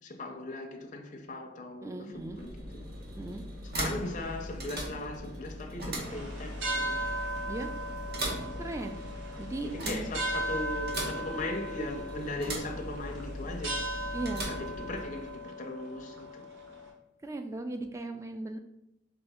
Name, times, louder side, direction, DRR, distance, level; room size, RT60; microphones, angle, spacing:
voice 1, 0.0-2.5 3.6-6.9 9.6-13.9 14.5-16.5, left 2 dB, 40° left, 0.5 m, -38 dB
voice 2, 1.8-2.4 3.2-3.4 7.5-7.7 8.6-9.0 9.4-10.1 14.1-14.4 17.2-18.6, right 2 dB, 15° right, 0.3 m, -37 dB
sound 1, 2.1-15.4, equal, 55° right, 0.9 m, -39 dB
sound 2, 6.0-16.9, right 1 dB, 85° right, 1.0 m, -37 dB
4.0 x 3.3 x 3.5 m
head